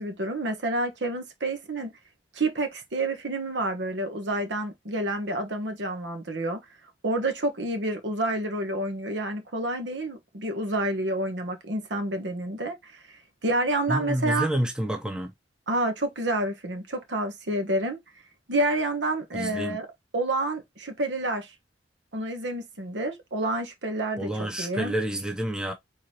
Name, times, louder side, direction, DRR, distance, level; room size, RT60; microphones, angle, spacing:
voice 1, 0.0-1.9 2.3-6.6 7.0-13.2 13.4-14.5 15.7-18.0 18.5-19.9 20.1-21.5 22.1-25.0, right 1 dB, 80° right, 1.2 m, -29 dB
voice 2, 13.9-15.3 19.3-19.8 24.2-25.7, right 1 dB, 5° right, 0.7 m, -29 dB
4.6 x 3.9 x 2.8 m
head